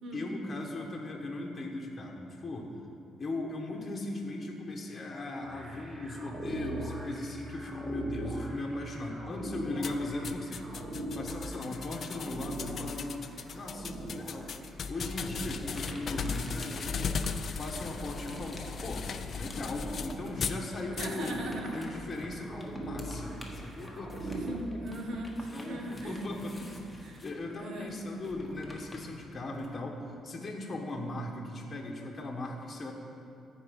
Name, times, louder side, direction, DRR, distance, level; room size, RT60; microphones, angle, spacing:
voice 1, 0.1-2.7 3.2-10.8 11.1-14.5 14.9-16.8 17.6-21.4 21.7-24.3 25.5-26.6 27.2-32.9, left 2 dB, 35° left, -1 dB, 1.2 m, -38 dB
sound 1, 5.4-24.6, right 1 dB, 25° right, 1.6 m, -42 dB
sound 2, 9.8-20.6 21.0-21.4, left 5 dB, 55° left, 0.4 m, -37 dB
sound 3, 15.3-20.4 20.7-29.8, left 1 dB, 10° left, 1.4 m, -50 dB
voice 2, 21.0-21.9 24.2-26.7 27.0-27.2 27.6-28.0, right 1 dB, 70° right, 1 dB, 1.4 m, -39 dB
14.0 x 4.7 x 5.3 m, 2.6 s
cardioid pair, 90°, 0 cm